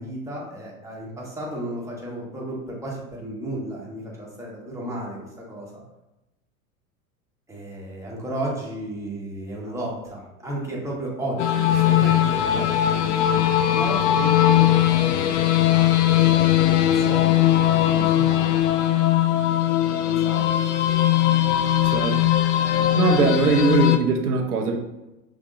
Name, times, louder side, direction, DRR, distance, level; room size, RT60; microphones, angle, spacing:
voice 1, 0.0-5.8 7.5-18.6 19.8-20.4, right 1 dB, 5° right, -4 dB, 1.3 m, -34 dB
sound 1, 11.4-24.0, left 12 dB, 55° left, 0.5 m, -19 dB
voice 2, 21.8-22.2 22.9-24.8, right 4 dB, 85° right, 3 dB, 0.9 m, -21 dB
5.9 x 3.5 x 2.5 m, 0.96 s
hypercardioid pair, 90°, 44 cm